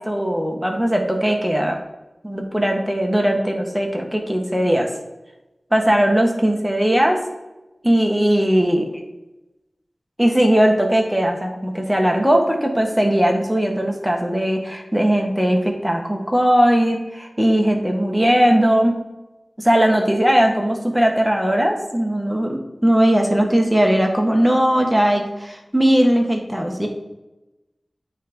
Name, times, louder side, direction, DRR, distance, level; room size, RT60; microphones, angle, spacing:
voice 1, 0.0-1.8 2.2-4.9 5.7-7.2 7.8-8.9 10.2-19.0 19.6-26.9, equal, 5° right, 2 dB, 1.3 m, -18 dB
8.8 x 3.5 x 5.2 m, 1.0 s
wide cardioid pair, 65°, 0 cm